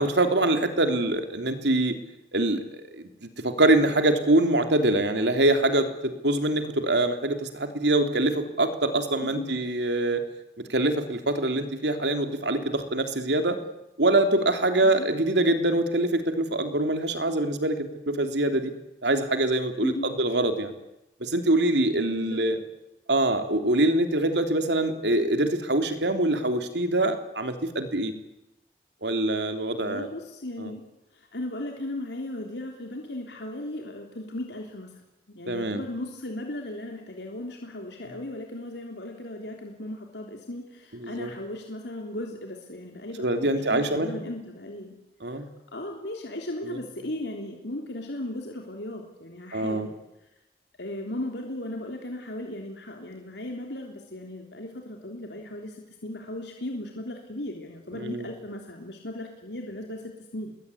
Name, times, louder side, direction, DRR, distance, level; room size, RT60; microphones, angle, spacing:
voice 1, 0.0-1.9 2.3-10.2 10.7-13.6 14.0-18.7 19.0-19.9 20.2-20.7 21.2-22.6 23.1-28.1 29.0-30.1 30.6-30.7 35.5-35.8 41.0-41.3 43.2-44.1 45.2-45.4 46.6-46.8 49.5-49.9 57.9-58.3, right 1 dB, 90° right, 7 dB, 3.3 m, -24 dB
voice 2, 9.2-9.6 14.8-15.1 19.8-20.1 22.1-22.4 29.8-30.8 31.1-35.0 35.4-44.9 45.7-49.9 50.8-60.5, left 1 dB, 85° left, 2 dB, 3.5 m, -36 dB
28.0 x 21.5 x 9.8 m, 0.92 s
head